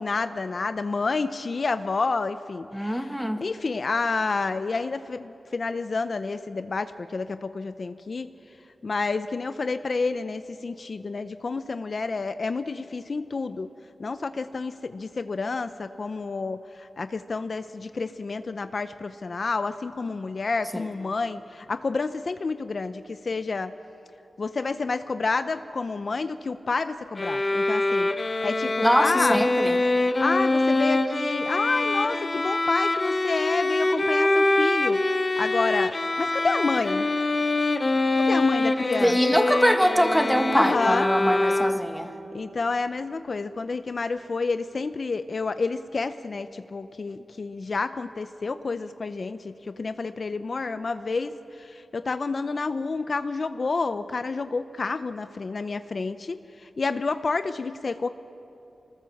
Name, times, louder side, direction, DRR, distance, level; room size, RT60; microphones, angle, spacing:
voice 1, 0.0-8.3 8.8-13.7 14.0-23.7 24.4-28.1 28.4-29.4 30.2-37.1 38.1-39.2 40.5-41.1 42.3-58.1, left 4 dB, 55° left, 11 dB, 0.6 m, -29 dB
voice 2, 2.7-3.4 20.7-20.9 28.8-29.7 39.0-42.1, equal, ahead, 6 dB, 1.5 m, -23 dB
sound 1, 27.2-42.1, left 2 dB, 35° left, 1.2 m, -24 dB
25.5 x 19.5 x 7.2 m, 2.8 s
wide cardioid pair, 80°, 0 cm